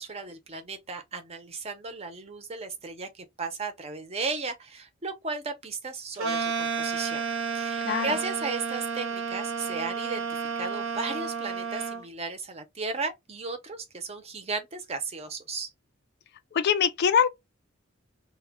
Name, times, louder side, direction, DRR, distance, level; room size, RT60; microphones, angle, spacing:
voice 1, 0.0-7.2 7.5-10.3 10.6-15.7, right 4 dB, 30° right, 0.6 m, -35 dB
sound 1, 6.2-12.0, right 5 dB, 80° right, 0.7 m, -31 dB
voice 2, 7.8-8.2 16.5-17.3, left 7 dB, 55° left, 0.4 m, -23 dB
2.2 x 2.1 x 3.3 m
head